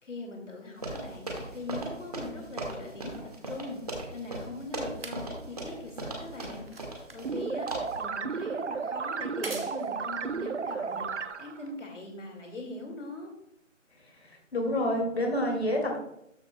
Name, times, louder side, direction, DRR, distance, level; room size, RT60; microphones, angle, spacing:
voice 1, 0.0-6.7 6.9-13.3, left 2 dB, 70° left, 1 dB, 2.3 m, -41 dB
sound 1, 0.8-7.4 7.7-8.0, right 2 dB, 30° right, 1.7 m, -38 dB
sound 2, 4.1-11.7 12.5-12.6, right 3 dB, 45° right, 1.1 m, -48 dB
sound 3, 7.2-11.7, right 5 dB, 65° right, 0.6 m, -33 dB
voice 2, 14.2-16.0, left 1 dB, 55° left, 1 dB, 2.5 m, -28 dB
13.0 x 6.6 x 2.3 m, 0.79 s
figure-of-eight pair, 175°, 39 cm